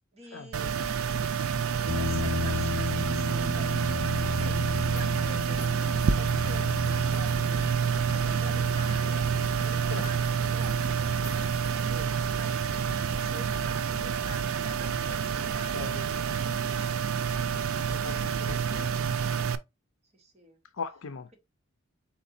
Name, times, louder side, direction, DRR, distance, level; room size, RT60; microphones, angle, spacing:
voice 1, 0.1-4.0 4.3-7.4 7.9-9.3 9.6-17.3 20.1-20.6, right 1 dB, 30° right, 1.3 m, -48 dB
sound 1, 0.5-19.6, right 7 dB, 80° right, 0.5 m, -28 dB
sound 2, 1.7-11.9, left 3 dB, 25° left, 2.8 m, -55 dB
sound 3, 1.9-15.0, left 4 dB, 50° right, 1.3 m, -36 dB
voice 2, 15.7-16.1 17.9-19.1 20.8-21.3, left 5 dB, 65° left, 0.6 m, -39 dB
4.4 x 3.9 x 2.7 m
head